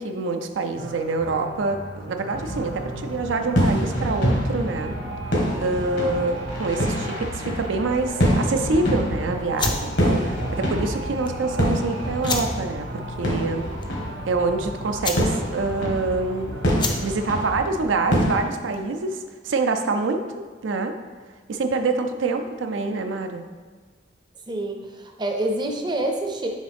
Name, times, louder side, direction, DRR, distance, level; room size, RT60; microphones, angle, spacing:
voice 1, 0.0-5.0 5.6-12.9 13.2-13.7 14.3-16.6 17.0-20.9 21.5-23.4, right 3 dB, 90° right, 6 dB, 0.5 m, -26 dB
sound 1, 0.8-17.5, right 1 dB, 70° right, 0.9 m, -37 dB
sound 2, 2.3-18.4, equal, 70° left, 1.5 m, -26 dB
sound 3, 9.5-19.0, left 3 dB, 25° left, 0.5 m, -33 dB
voice 2, 24.5-26.5, right 1 dB, 25° right, 3 dB, 0.5 m, -27 dB
6.3 x 4.6 x 3.5 m, 1.5 s
head